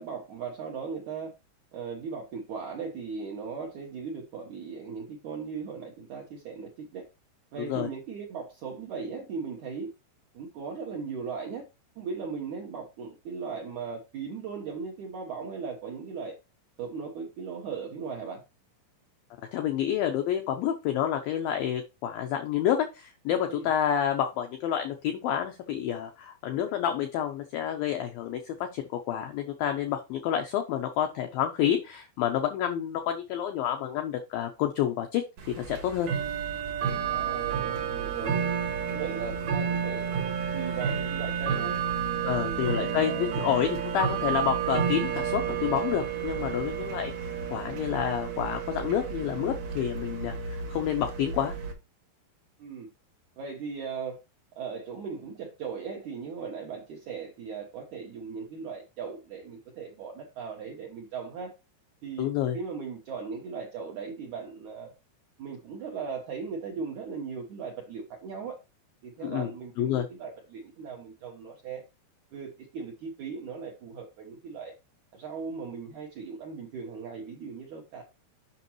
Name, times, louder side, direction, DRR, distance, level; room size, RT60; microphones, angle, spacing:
voice 1, 0.0-1.3 1.7-7.1 7.5-9.9 10.3-11.7 11.9-16.3 16.8-18.4 23.5-23.7 37.0-38.4 38.9-41.8 42.3-43.3 48.8-49.0 52.6-52.9 53.4-54.2 54.5-61.5 62.0-62.3 62.5-64.9 65.4-68.6 69.0-71.8 72.3-74.7 75.1-78.0, right 5 dB, 85° right, 1.7 m, -38 dB
voice 2, 19.5-36.1 42.2-51.6 62.2-62.6 69.2-69.5 69.8-70.1, left 10 dB, 85° left, 2.1 m, -29 dB
Bell / Tick-tock, 35.4-51.7, right 7 dB, 60° right, 2.6 m, -31 dB
8.2 x 6.1 x 3.0 m
omnidirectional pair, 5.2 m